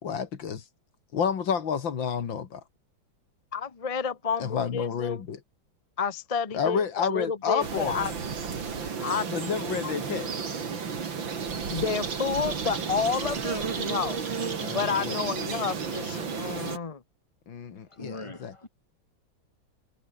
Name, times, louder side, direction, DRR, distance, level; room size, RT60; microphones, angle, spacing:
voice 1, 0.0-0.6 1.1-2.6 4.4-5.4 6.5-8.0 9.3-10.3 14.6-15.2 17.5-18.6, left 7 dB, 75° left, 2.6 m, -30 dB
voice 2, 3.5-5.2 6.0-8.1 8.8-9.4 9.8-9.9 11.7-14.2 14.7-17.0, left 6 dB, 35° left, 0.6 m, -30 dB
sound 1, 7.6-16.8, right 6 dB, 80° right, 3.3 m, -32 dB
voice 3, 18.0-18.7, left 2 dB, 15° left, 3.0 m, -41 dB
omnidirectional pair, 2.1 m